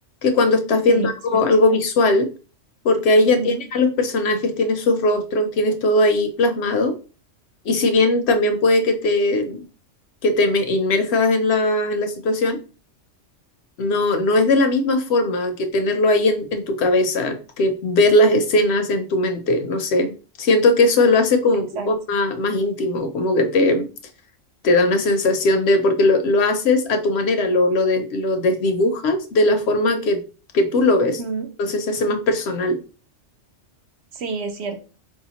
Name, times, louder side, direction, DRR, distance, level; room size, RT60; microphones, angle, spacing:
voice 1, 0.2-2.3 2.8-6.9 7.7-9.6 10.2-12.6 13.8-20.1 20.4-23.9 24.6-30.2 30.5-31.2 31.6-32.8, left 2 dB, 65° left, 7 dB, 0.8 m, -19 dB
voice 2, 0.9-1.4 3.2-3.6 21.8-21.9 31.0-31.5 34.1-34.8, right 4 dB, 65° right, 6 dB, 0.9 m, -29 dB
4.3 x 2.8 x 2.8 m, 0.35 s
omnidirectional pair, 1.3 m